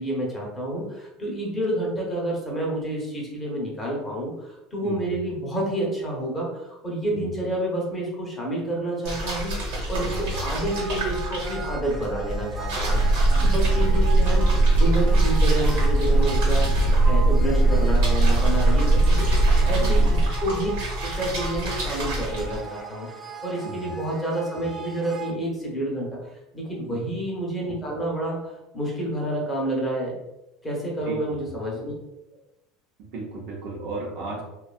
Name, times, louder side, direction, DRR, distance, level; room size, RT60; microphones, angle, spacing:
voice 1, 0.0-20.7 21.0-30.2 30.6-31.9, right 1 dB, 15° left, -2 dB, 0.8 m, -29 dB
voice 2, 4.8-5.1 7.1-7.3 10.0-10.3 19.7-20.1 23.6-23.9 26.9-27.1 31.0-31.2 33.0-34.4, right 3 dB, 65° right, -1 dB, 0.7 m, -35 dB
sound 1, 9.0-22.6, right 1 dB, 85° right, 1.0 m, -31 dB
sound 2, 10.3-25.3, right 5 dB, 10° right, 0.4 m, -39 dB
sound 3, 12.9-20.3, right 2 dB, 55° left, 0.7 m, -19 dB
2.6 x 2.2 x 2.4 m, 0.92 s
supercardioid pair, 125°, 0 cm